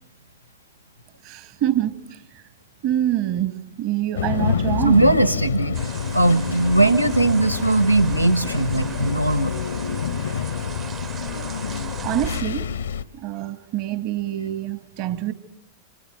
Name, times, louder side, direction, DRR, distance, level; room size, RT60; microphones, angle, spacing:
voice 1, 1.2-2.4 2.8-5.3 12.0-12.7 13.1-15.3, right 12 dB, 45° right, 1.8 m, -26 dB
sound 1, 4.2-13.0, left 7 dB, 65° left, 1.0 m, -27 dB
voice 2, 4.8-5.8 6.1-9.6, right 2 dB, 90° right, 1.1 m, -19 dB
sound 2, 5.7-12.4, right 7 dB, 25° right, 1.0 m, -37 dB
27.0 x 26.5 x 7.7 m
figure-of-eight pair, 90°, 0 cm